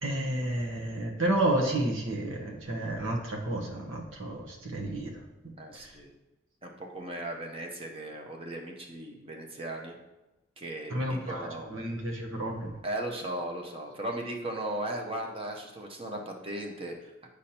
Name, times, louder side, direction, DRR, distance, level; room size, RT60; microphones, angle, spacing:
voice 1, 0.0-5.2 5.7-5.9 10.9-12.7, right 1 dB, 75° right, 1 dB, 1.1 m, -31 dB
voice 2, 5.6-6.1 6.6-10.0 10.6-11.8 12.8-17.3, right 1 dB, 25° right, 1 dB, 0.7 m, -37 dB
8.3 x 5.2 x 2.8 m, 1.0 s
head